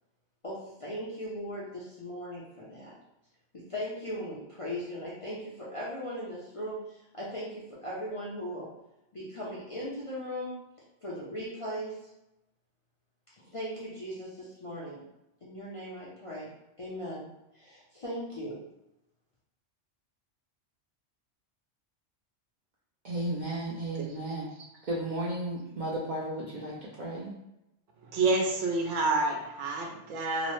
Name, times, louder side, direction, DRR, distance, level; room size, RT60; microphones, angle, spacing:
voice 1, 0.4-2.9 3.6-8.7 9.1-10.5 11.0-12.1 13.5-15.0 15.4-16.5 16.8-17.3 17.5-18.6, equal, 45° left, 0.4 m, -38 dB
voice 2, 23.0-24.5 24.8-27.3, right 1 dB, 60° right, 0.5 m, -34 dB
voice 3, 28.0-30.5, right 3 dB, 80° right, 1.0 m, -28 dB
2.8 x 2.0 x 3.0 m
omnidirectional pair, 1.2 m